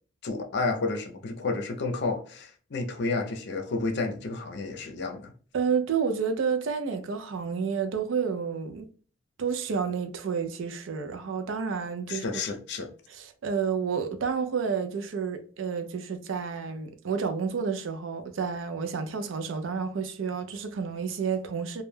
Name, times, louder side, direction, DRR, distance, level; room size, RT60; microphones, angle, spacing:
voice 1, 0.2-5.3 12.1-12.9, left 3 dB, 60° left, 0.5 m, -31 dB
voice 2, 5.5-8.9 9.4-12.3 13.1-21.8, right 6 dB, 70° right, 0.4 m, -30 dB
2.2 x 2.1 x 3.1 m
head